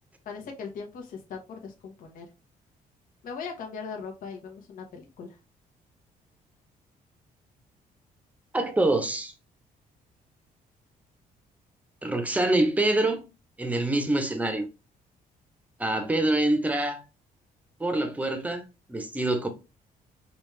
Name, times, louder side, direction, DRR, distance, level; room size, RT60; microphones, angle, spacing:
voice 1, 0.2-2.3 3.2-5.4, left 5 dB, 65° left, 1.0 m, -39 dB
voice 2, 8.5-9.3 12.0-13.3 13.6-14.7 15.8-17.0 17.8-18.6 18.9-19.5, right 2 dB, 10° right, 0.7 m, -25 dB
5.0 x 2.4 x 3.2 m
cardioid pair, 130°, 15 cm